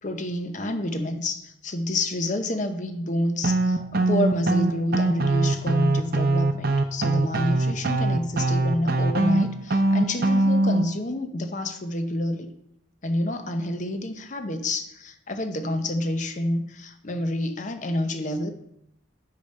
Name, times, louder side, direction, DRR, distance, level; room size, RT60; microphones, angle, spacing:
voice 1, 0.0-12.5 13.0-18.5, left 1 dB, 40° left, 8 dB, 0.7 m, -28 dB
sound 1, 3.4-10.8, right 2 dB, 50° right, 0.6 m, -22 dB
6.9 x 5.8 x 5.3 m, 0.76 s
head